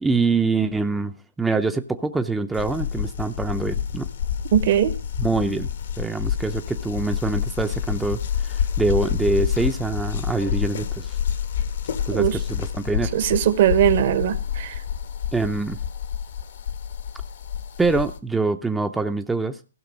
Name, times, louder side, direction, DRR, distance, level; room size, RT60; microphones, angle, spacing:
voice 1, 0.0-4.1 5.2-5.7 6.0-11.2 12.1-13.1 15.3-15.8 17.8-19.6, right 3 dB, 5° right, 0.6 m, -24 dB
sound 1, 2.5-18.2, left 8 dB, 65° left, 1.3 m, -28 dB
voice 2, 4.5-4.9 12.1-12.4 13.1-14.8, right 10 dB, 50° right, 1.1 m, -20 dB
15.5 x 5.9 x 5.2 m
hypercardioid pair, 125°, 0 cm